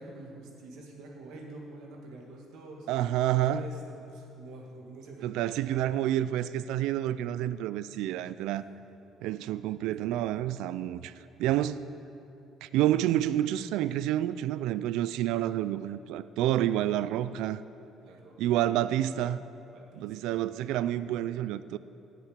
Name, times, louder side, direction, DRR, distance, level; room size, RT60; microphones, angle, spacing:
voice 1, 0.0-2.9 3.3-6.3 8.4-8.8 17.2-17.5 18.0-18.3 18.7-18.9 19.7-20.6, right 2 dB, 75° right, 0 dB, 2.1 m, -47 dB
voice 2, 2.9-3.6 5.2-8.6 9.2-11.1 11.4-11.8 12.6-17.6 18.4-19.4 19.9-21.8, right 12 dB, 90° right, 15 dB, 0.3 m, -29 dB
17.5 x 7.5 x 5.1 m, 2.7 s
cardioid pair, 160°, 0 cm